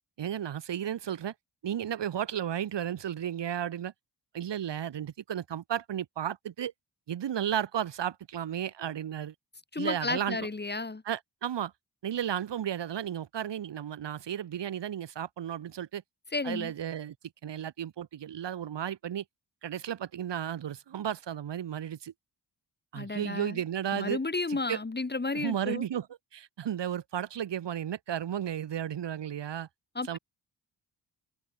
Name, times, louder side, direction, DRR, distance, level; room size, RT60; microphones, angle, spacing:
voice 1, 0.2-1.3 1.6-3.9 4.3-6.7 7.1-9.3 9.8-10.5 11.0-11.7 12.0-16.0 16.4-17.1 17.4-19.2 19.6-22.1 22.9-24.2 24.5-24.8 25.3-26.1 26.3-29.7 30.1-30.2, right 10 dB, 90° right, 5.8 m, -33 dB
voice 2, 9.7-11.0 16.3-16.7 22.9-23.6 23.9-25.8 29.9-30.2, left 3 dB, 25° left, 4.7 m, -32 dB
wide cardioid pair, 115°, 41 cm